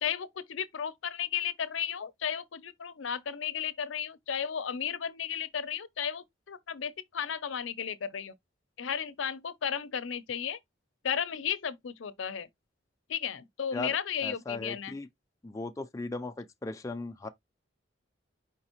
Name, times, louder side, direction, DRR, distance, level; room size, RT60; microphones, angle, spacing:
voice 1, 0.0-8.3 8.8-10.6 11.0-12.5 13.1-14.9, left 8 dB, 90° left, 0.5 m, -34 dB
voice 2, 14.2-15.1 15.4-17.3, left 3 dB, 15° left, 0.4 m, -37 dB
4.8 x 3.4 x 2.9 m
head